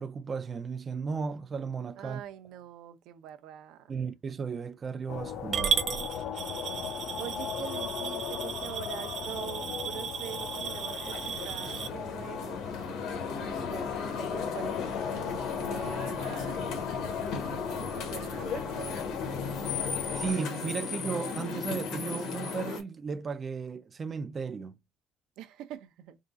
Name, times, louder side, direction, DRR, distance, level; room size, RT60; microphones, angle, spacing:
voice 1, 0.0-2.2 3.9-5.8 20.2-24.8, right 5 dB, 25° right, 0.3 m, -35 dB
voice 2, 2.0-3.9 7.2-12.6 13.5-19.1 25.4-26.2, right 11 dB, 85° right, 0.6 m, -44 dB
sound 1, 5.1-20.3, left 8 dB, 65° left, 0.7 m, -37 dB
Coin (dropping) / Glass, 5.5-11.9, right 8 dB, 40° right, 0.7 m, -34 dB
sound 2, 10.3-22.8, left 5 dB, 80° left, 1.3 m, -36 dB
3.7 x 2.3 x 3.8 m
cardioid pair, 175°, 0 cm